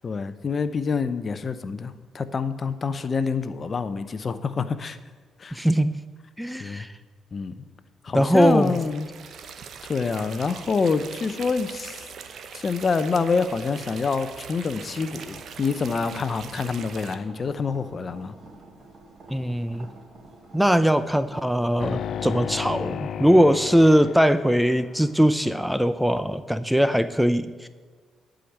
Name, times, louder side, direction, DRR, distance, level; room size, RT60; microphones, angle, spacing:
voice 1, 0.0-5.0 5.4-5.6 6.6-6.9 7.3-7.5 8.0-9.1 9.8-12.0 12.5-18.3, left 5 dB, 45° left, 12 dB, 0.7 m, -26 dB
voice 2, 5.5-5.9 6.4-6.9 8.1-8.8 19.3-19.9 20.5-27.7, equal, ahead, 12 dB, 0.5 m, -21 dB
sound 1, 8.3-17.1, right 6 dB, 65° right, 0.8 m, -41 dB
sound 2, 13.0-21.4, right 2 dB, 45° right, 3.0 m, -49 dB
sound 3, 21.8-25.2, left 8 dB, 70° left, 0.3 m, -34 dB
11.0 x 5.1 x 8.4 m, 1.5 s
cardioid pair, 75°, 0 cm